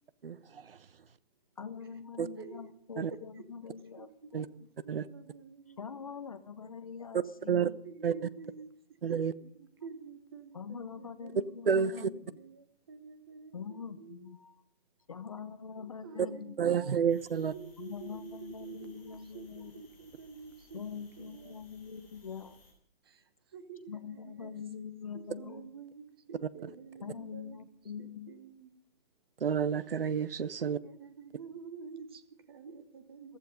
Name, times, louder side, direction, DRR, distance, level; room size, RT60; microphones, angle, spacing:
voice 1, 0.2-0.8 2.2-2.3 3.0-3.1 4.3-4.5 4.9-5.1 7.5-7.7 8.0-8.1 9.0-9.3 11.6-12.1 16.2-16.3 16.6-17.5 29.4-30.8, right 7 dB, 65° right, 1.1 m, -29 dB
voice 2, 1.6-4.7 5.8-7.8 10.5-12.4 13.5-14.6 15.1-16.8 17.8-19.8 20.7-22.6 23.9-25.8 27.0-28.3 33.3-33.4, left 6 dB, 35° left, 0.7 m, -44 dB
voice 3, 2.4-2.7 3.1-3.4 4.0-5.8 7.8-8.7 9.1-11.6 11.9-14.3 16.0-16.8 17.3-21.6 23.0-24.5 25.1-27.6 28.0-28.7 30.6-33.4, right 5 dB, 25° right, 1.1 m, -49 dB
sound 1, 17.1-22.7, left 1 dB, 5° left, 3.8 m, -61 dB
15.5 x 14.5 x 5.3 m
hypercardioid pair, 175°, 30 cm